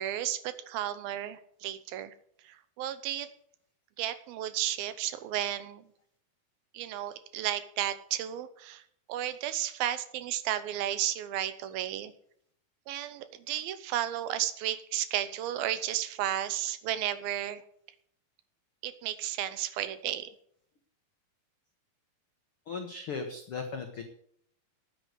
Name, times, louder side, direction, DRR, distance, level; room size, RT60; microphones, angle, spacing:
voice 1, 0.0-2.1 2.4-3.3 4.0-5.8 6.7-8.8 9.1-12.1 12.9-17.6 18.8-20.3, right 12 dB, 80° right, 13 dB, 2.6 m, -33 dB
voice 2, 22.7-24.0, left 4 dB, 75° left, 5 dB, 1.2 m, -37 dB
9.8 x 9.5 x 8.0 m, 0.66 s
omnidirectional pair, 4.4 m